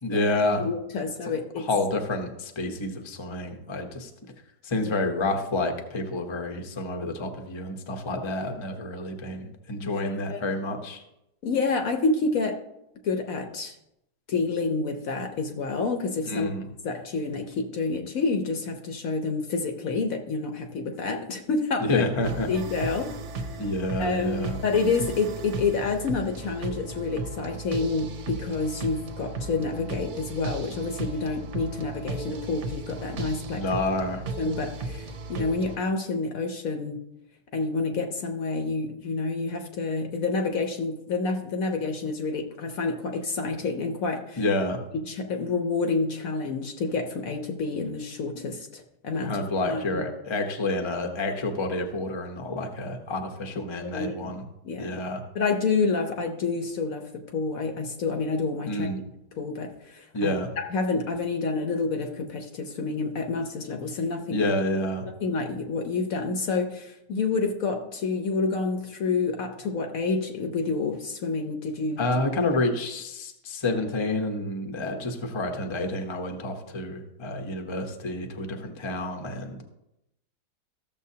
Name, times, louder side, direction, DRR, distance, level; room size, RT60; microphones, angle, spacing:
voice 1, 0.0-0.7 1.6-4.1 4.6-11.0 16.3-16.7 21.8-22.5 23.6-24.6 33.5-34.4 44.4-44.8 49.2-54.4 54.8-55.2 58.7-59.0 60.1-60.5 64.3-65.1 72.0-79.6, left 2 dB, 25° left, 4 dB, 0.6 m, -29 dB
voice 2, 0.6-1.7 9.8-10.4 11.4-12.6 13.0-13.8 14.3-16.5 16.8-22.0 22.5-23.1 24.0-33.6 34.4-37.0 37.5-44.4 44.9-50.0 53.8-54.4 54.6-55.0 55.3-58.9 59.3-64.5 65.2-72.0, left 4 dB, 60° left, 4 dB, 1.1 m, -28 dB
sound 1, 22.2-35.8, right 2 dB, 55° right, 0.9 m, -36 dB
14.0 x 7.1 x 2.8 m, 0.85 s
omnidirectional pair, 1.9 m